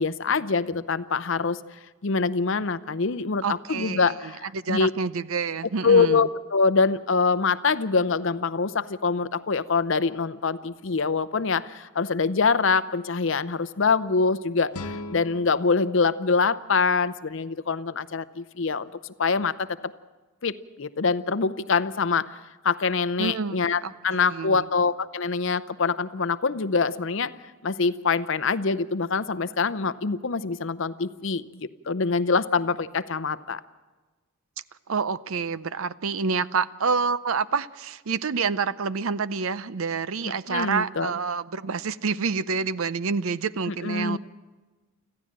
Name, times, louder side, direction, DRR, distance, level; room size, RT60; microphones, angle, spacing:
voice 1, 0.0-1.6 2.0-4.9 5.8-19.7 20.4-22.4 22.6-27.3 27.6-33.6 40.5-41.1 43.7-44.2, left 4 dB, 55° left, 15 dB, 0.7 m, -24 dB
voice 2, 3.4-6.3 23.2-23.6 23.8-24.6 34.9-44.2, right 5 dB, 70° right, 16 dB, 0.6 m, -28 dB
sound 1, 14.7-17.7, left 2 dB, 90° left, 1.0 m, -41 dB
26.0 x 15.0 x 7.5 m, 1.3 s
head